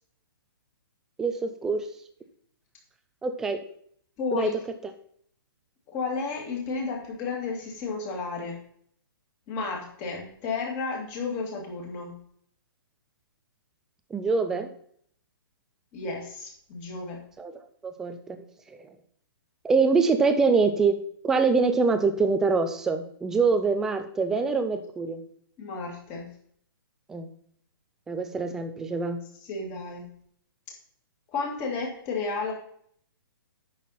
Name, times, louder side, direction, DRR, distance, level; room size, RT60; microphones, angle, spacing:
voice 1, 1.2-1.9 3.2-3.6 4.3-4.5 14.1-14.7 17.4-17.5 17.8-18.4 18.8-18.9 19.6-21.0 21.2-25.2 27.1-27.3 28.1-29.2, right 4 dB, 5° right, 8 dB, 0.3 m, -24 dB
voice 2, 4.2-4.6 5.9-8.6 9.5-12.2 15.9-17.2 25.6-26.3 29.4-30.1 31.3-32.5, left 4 dB, 20° left, 0 dB, 2.1 m, -32 dB
9.2 x 6.5 x 4.1 m, 0.63 s
hypercardioid pair, 170°, 13 cm